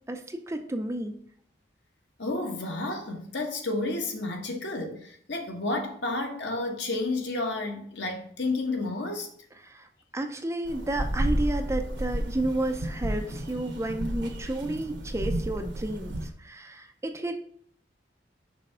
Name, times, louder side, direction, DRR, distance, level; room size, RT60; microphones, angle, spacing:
voice 1, 0.1-1.1 9.7-9.9 10.1-17.4, right 1 dB, 15° right, 0.5 m, -31 dB
voice 2, 2.2-9.3, left 2 dB, 70° left, 1.2 m, -31 dB
sound 1, 10.6-16.2, right 1 dB, 75° right, 1.2 m, -32 dB
6.2 x 3.5 x 5.6 m
head